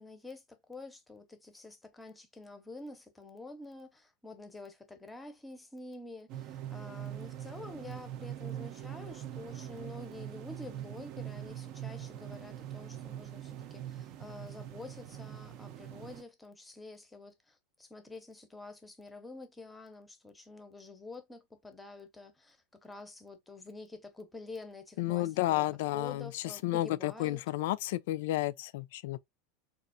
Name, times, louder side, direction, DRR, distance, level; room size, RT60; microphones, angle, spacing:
voice 1, 0.0-25.6 25.9-27.4, left 2 dB, 10° left, 0.6 m, -48 dB
sound 1, 6.3-16.2, right 11 dB, 45° right, 0.5 m, -43 dB
voice 2, 25.0-29.2, left 16 dB, 70° left, 0.3 m, -32 dB
4.2 x 2.4 x 2.5 m
supercardioid pair, 150°, 0 cm